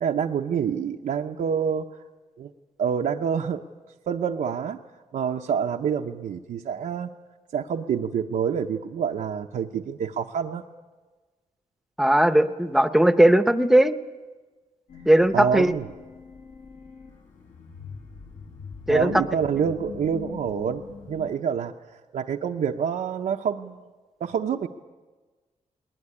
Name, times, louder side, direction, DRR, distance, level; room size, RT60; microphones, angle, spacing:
voice 1, 0.0-1.9 2.4-2.5 2.8-3.6 4.1-4.8 5.1-7.1 7.5-10.6 15.3-15.9 18.9-21.7 22.1-23.8 24.2-24.7, right 7 dB, 90° right, 2 dB, 0.8 m, -27 dB
voice 2, 12.0-14.0 15.1-15.7 18.9-19.1, right 1 dB, ahead, 12 dB, 0.7 m, -18 dB
sound 1, 14.9-21.3, left 6 dB, 80° left, 4.5 m, -42 dB
20.0 x 20.0 x 9.9 m, 1.3 s
wide cardioid pair, 175°, 13 cm